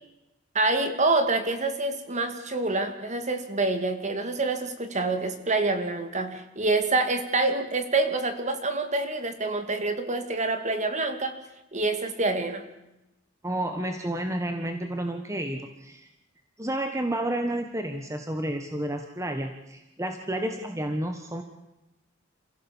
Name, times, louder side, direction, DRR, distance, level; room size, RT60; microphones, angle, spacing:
voice 1, 0.5-11.3 11.7-12.6, right 3 dB, 35° right, 7 dB, 2.4 m, -26 dB
voice 2, 13.4-16.1 16.6-21.4, right 1 dB, 15° right, 5 dB, 1.4 m, -31 dB
28.0 x 16.5 x 7.3 m, 0.95 s
head